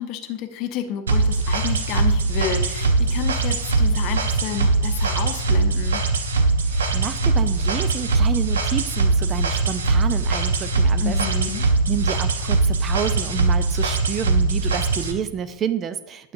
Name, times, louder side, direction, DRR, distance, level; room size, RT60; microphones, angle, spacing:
voice 1, 0.0-6.0 11.0-11.7, left 9 dB, 40° left, 8 dB, 0.7 m, -30 dB
sound 1, 1.1-15.1, right 3 dB, 65° right, 0.7 m, -21 dB
voice 2, 6.7-16.3, right 8 dB, 25° right, 13 dB, 0.3 m, -29 dB
9.2 x 7.4 x 2.6 m, 0.88 s
figure-of-eight pair, 90°, 0 cm